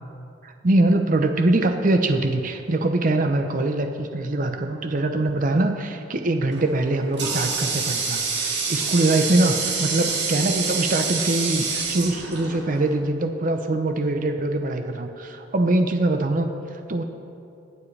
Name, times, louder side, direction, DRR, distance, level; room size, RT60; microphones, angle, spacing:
voice 1, 0.4-15.1 15.5-17.0, right 2 dB, 45° right, 6 dB, 0.6 m, -23 dB
Water tap faucet, 6.5-13.0, right 4 dB, 65° right, 2.0 m, -27 dB
21.0 x 7.3 x 3.3 m, 2.6 s
head